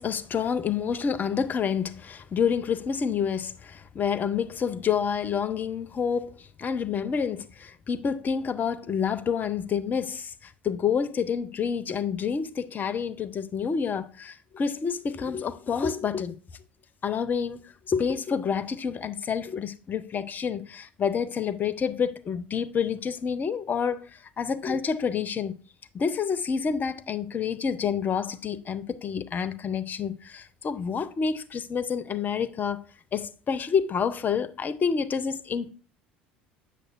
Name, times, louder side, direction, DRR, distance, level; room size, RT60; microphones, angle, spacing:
voice 1, 0.0-6.3 6.6-16.3 17.0-24.1 24.4-25.6 25.9-32.8 33.1-35.7, left 6 dB, 35° left, 0.6 m, -28 dB
7.8 x 6.5 x 2.5 m
figure-of-eight pair, 65°, 6 cm